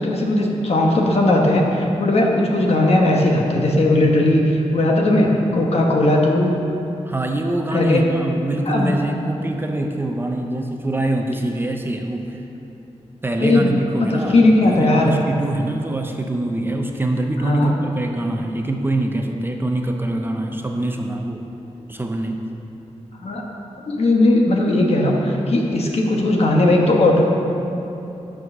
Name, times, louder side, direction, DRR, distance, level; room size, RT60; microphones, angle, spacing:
voice 1, 0.0-6.6 7.7-8.0 8.7-9.0 13.4-15.2 17.4-17.7 23.2-23.4 23.9-27.2, left 1 dB, 60° left, 0 dB, 1.2 m, -17 dB
voice 2, 7.0-12.5 13.2-21.5 21.9-22.4, right 1 dB, 20° right, 3 dB, 0.5 m, -24 dB
9.4 x 6.3 x 6.0 m, 2.9 s
wide cardioid pair, 180°, 12 cm